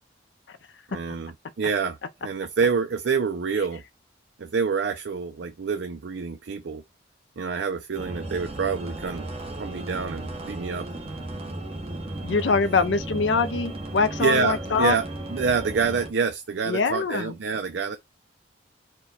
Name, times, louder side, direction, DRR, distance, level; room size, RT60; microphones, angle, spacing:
voice 1, 0.9-3.8 4.4-6.8 7.4-9.3 9.6-10.9 14.2-18.0, right 5 dB, 75° right, 0.5 m, -27 dB
sound 1, 7.9-16.1, right 1 dB, 35° right, 1.0 m, -35 dB
voice 2, 12.2-14.9 16.7-17.3, left 4 dB, 80° left, 0.5 m, -23 dB
4.4 x 2.2 x 4.0 m
head